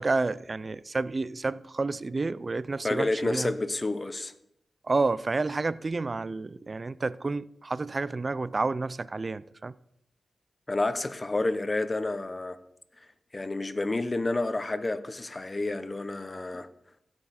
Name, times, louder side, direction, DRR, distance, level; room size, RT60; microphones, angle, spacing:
voice 1, 0.0-3.5 4.8-9.7, right 3 dB, 45° right, 0.4 m, -30 dB
voice 2, 2.8-4.3 10.7-12.6 13.3-16.7, left 2 dB, 35° left, 0.9 m, -29 dB
16.0 x 6.4 x 4.2 m
cardioid pair, 45°, 0 cm